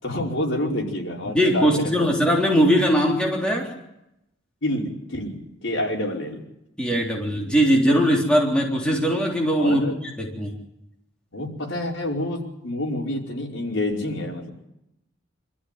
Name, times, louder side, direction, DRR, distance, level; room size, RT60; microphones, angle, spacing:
voice 1, 0.0-2.1 4.6-5.4 5.6-6.4 9.6-10.0 11.3-14.5, left 1 dB, 70° left, -1 dB, 5.3 m, -28 dB
voice 2, 1.3-3.7 6.8-10.5, equal, 5° left, -2 dB, 3.7 m, -20 dB
25.0 x 14.0 x 9.2 m, 0.84 s
head